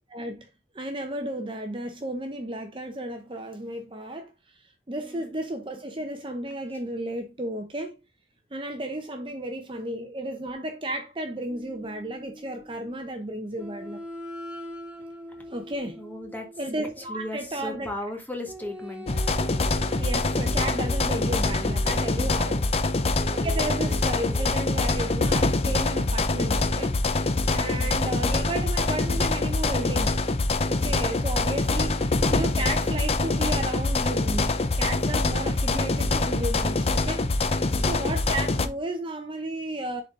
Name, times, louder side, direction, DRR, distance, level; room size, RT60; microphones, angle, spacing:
voice 1, 0.1-0.5 0.7-4.3 4.9-8.0 8.5-14.0 15.5-16.0 16.6-18.3 19.9-22.6 23.0-27.2 27.5-30.3 30.7-37.5 37.8-40.0, right 1 dB, 30° right, 0.8 m, -33 dB
voice 2, 5.0-5.3 16.0-16.5 17.1-19.1 22.1-22.8 27.7-28.0 37.5-38.0, left 1 dB, 10° left, 1.7 m, -38 dB
sound 1, 11.5-12.9 13.6-17.4 18.4-22.1 22.8-24.8, right 1 dB, 10° right, 1.6 m, -42 dB
sound 2, 19.1-38.7, left 2 dB, 35° left, 0.6 m, -24 dB
11.0 x 4.0 x 3.7 m
head